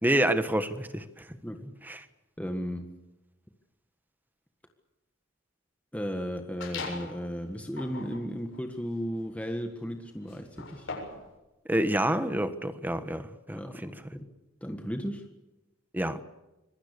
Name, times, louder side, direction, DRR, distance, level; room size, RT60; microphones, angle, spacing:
voice 1, 0.0-1.2 1.9-2.0 11.7-13.9 15.9-16.2, right 1 dB, 10° right, 1.3 m, -28 dB
voice 2, 2.4-2.9 5.9-10.9 13.5-14.3 14.6-15.3, equal, 5° left, 1.6 m, -35 dB
sound 1, 6.6-7.2 7.7-11.3, left 4 dB, 70° left, 7.6 m, -41 dB
26.0 x 22.5 x 6.8 m
head